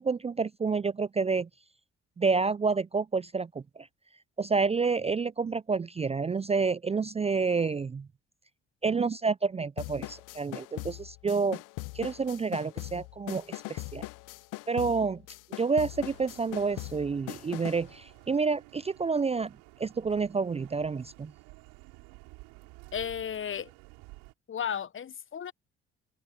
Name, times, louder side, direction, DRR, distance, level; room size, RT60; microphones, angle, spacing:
voice 1, 0.0-1.5 2.2-3.9 4.4-8.1 8.8-11.6 11.9-14.1 14.7-15.2 15.6-19.5 19.8-21.3, right 4 dB, 20° right, 0.5 m, -29 dB
sound 1, 9.8-17.9, left 23 dB, 70° left, 0.8 m, -41 dB
sound 2, 15.9-24.3, right 26 dB, 75° right, 5.9 m, -53 dB
voice 2, 22.9-23.7 24.5-25.5, left 8 dB, 40° left, 1.0 m, -34 dB
hypercardioid pair, 50°, 32 cm